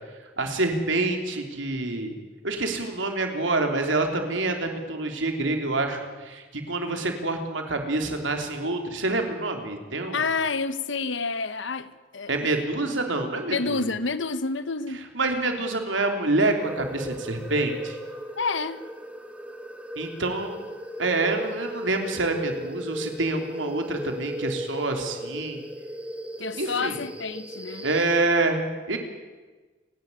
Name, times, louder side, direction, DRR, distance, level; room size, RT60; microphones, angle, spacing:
voice 1, 0.4-2.1 2.4-10.2 12.3-13.8 15.1-18.0 20.0-20.6 21.0-25.6 26.5-27.0 27.8-29.0, right 2 dB, 80° right, 3.3 m, -27 dB
voice 2, 10.1-12.3 13.5-15.0 18.4-18.8 26.4-27.9, left 4 dB, 75° left, 1.1 m, -29 dB
sound 1, 16.6-28.1, equal, 5° right, 1.7 m, -37 dB
29.5 x 11.5 x 9.7 m
head